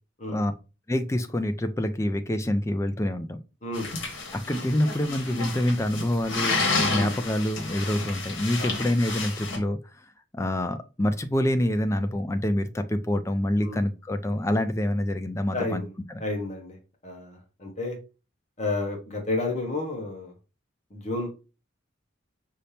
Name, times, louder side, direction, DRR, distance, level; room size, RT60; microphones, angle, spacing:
voice 1, 0.9-3.4 4.3-9.8 10.3-15.8, left 1 dB, 15° left, 0.4 m, -26 dB
sound 1, 3.7-9.6, left 3 dB, 70° left, 1.3 m, -31 dB
voice 2, 6.9-7.2 8.6-8.8 13.6-13.8 15.5-15.9 16.2-16.8 17.0-18.0 18.6-20.3 20.9-21.4, left 2 dB, 35° left, 1.1 m, -31 dB
5.4 x 2.7 x 3.3 m
head